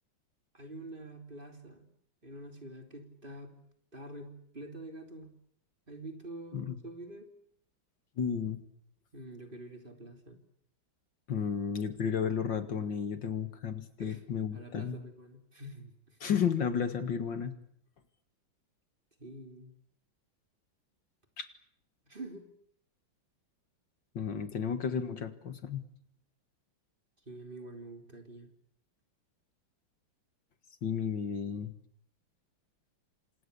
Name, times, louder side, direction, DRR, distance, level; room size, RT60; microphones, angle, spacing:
voice 1, 0.5-1.9 2.2-3.6 3.9-5.4 5.9-7.3 9.1-10.4 14.0-14.2 14.5-16.2 19.2-19.7 22.1-22.5 27.3-28.5, right 1 dB, 25° right, 5 dB, 3.5 m, -46 dB
voice 2, 8.2-8.6 11.3-15.0 16.2-17.5 21.4-21.5 24.1-25.8 30.8-31.7, left 7 dB, 65° left, 10 dB, 2.5 m, -32 dB
29.0 x 26.5 x 6.9 m, 0.66 s
omnidirectional pair, 2.2 m